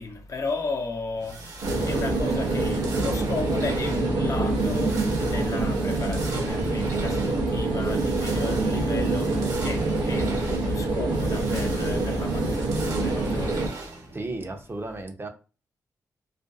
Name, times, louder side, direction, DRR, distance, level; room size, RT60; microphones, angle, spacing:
voice 1, 0.0-14.2, left 3 dB, 50° left, 0.7 m, -35 dB
sound 1, 1.2-14.3, right 3 dB, 65° right, 1.0 m, -40 dB
sound 2, 1.6-13.7, right 2 dB, 90° right, 0.6 m, -25 dB
voice 2, 14.1-15.3, right 2 dB, 35° right, 0.6 m, -34 dB
2.5 x 2.2 x 2.4 m
supercardioid pair, 40°, 7 cm